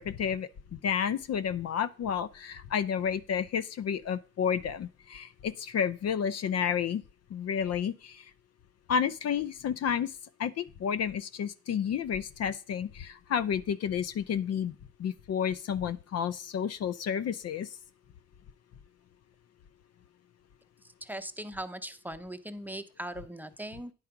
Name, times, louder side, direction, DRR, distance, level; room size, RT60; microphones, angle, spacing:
voice 1, 0.0-7.0 7.3-8.3 8.9-10.1 10.4-17.7, left 8 dB, 55° left, 0.6 m, -31 dB
voice 2, 21.0-23.9, right 1 dB, 5° right, 0.7 m, -39 dB
9.8 x 4.7 x 5.9 m
cardioid pair, 90°, 30 cm